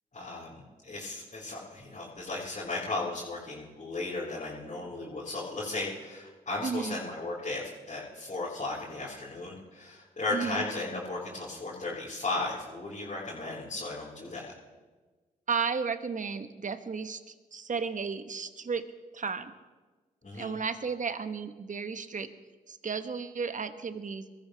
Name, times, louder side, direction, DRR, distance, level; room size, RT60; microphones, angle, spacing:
voice 1, 0.1-14.5 20.2-20.5, left 2 dB, 40° left, -8 dB, 4.7 m, -36 dB
voice 2, 6.6-7.0 10.3-10.6 15.5-18.9 19.1-19.5 20.3-22.3 22.7-24.3, right 5 dB, 45° right, 11 dB, 1.2 m, -33 dB
22.0 x 14.0 x 3.4 m, 1.3 s
hypercardioid pair, 40°, 18 cm